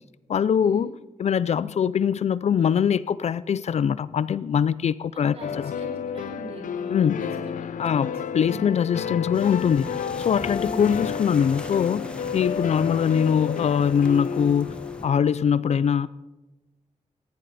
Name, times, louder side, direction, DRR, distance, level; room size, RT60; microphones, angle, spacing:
voice 1, 0.3-0.9 1.2-5.4 5.6-5.7 6.9-7.2 7.8-9.9 10.2-16.1, left 7 dB, 60° left, 0.5 m, -22 dB
voice 2, 5.1-7.6 8.0-8.1 8.4-8.7 10.6-11.1, right 2 dB, 50° right, 4.8 m, -41 dB
sound 1, 5.4-15.3, left 7 dB, 85° left, 0.8 m, -31 dB
sound 2, 9.3-15.1, left 1 dB, 10° left, 1.1 m, -41 dB
19.0 x 15.5 x 4.2 m
wide cardioid pair, 150°, 13 cm